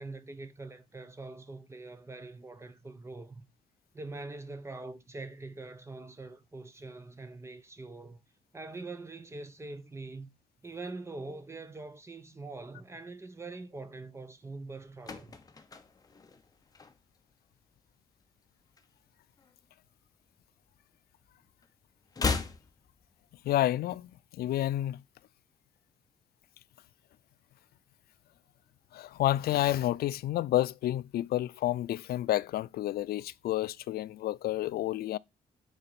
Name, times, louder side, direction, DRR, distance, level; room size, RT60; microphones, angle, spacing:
voice 1, 0.0-3.5 3.9-8.2 8.5-10.3 10.6-15.4, right 3 dB, 15° right, 1.0 m, -43 dB
sound 1, 14.7-17.3 17.6-17.9 18.2-19.7 19.9-21.3 21.5-23.7 23.9-24.0, left 4 dB, 25° left, 1.0 m, -37 dB
voice 2, 23.4-25.0 28.9-35.2, left 14 dB, 90° left, 0.4 m, -30 dB
9.9 x 4.0 x 5.9 m
wide cardioid pair, 155°, 15 cm